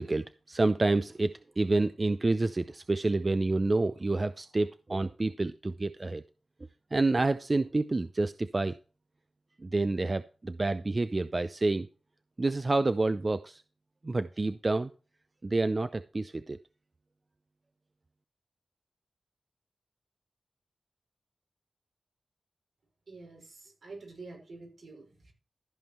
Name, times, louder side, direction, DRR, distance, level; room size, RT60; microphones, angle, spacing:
voice 1, 0.0-6.2 6.9-8.7 9.6-11.9 12.4-13.6 14.0-14.9 15.4-16.6, right 2 dB, 40° right, 0.6 m, -28 dB
voice 2, 23.1-25.3, right 3 dB, 75° right, 5.3 m, -47 dB
14.0 x 5.4 x 4.4 m
cardioid pair, 50°, 0 cm